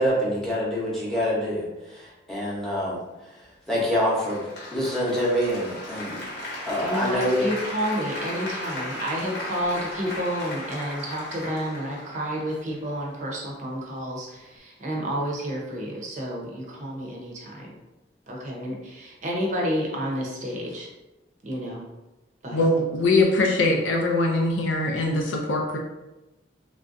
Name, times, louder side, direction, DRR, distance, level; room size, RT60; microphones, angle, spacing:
voice 1, 0.0-3.0 3.7-6.2 6.7-7.4, equal, 5° left, -6 dB, 0.8 m, -26 dB
Applause, 3.9-12.9, left 1 dB, 60° left, 0.9 m, -36 dB
voice 2, 6.8-17.7 18.3-20.9 21.4-21.9 22.4-22.6, equal, 40° right, -2 dB, 0.6 m, -30 dB
voice 3, 22.5-25.8, left 2 dB, 85° left, 1 dB, 0.4 m, -22 dB
3.3 x 2.5 x 2.5 m, 1.0 s
head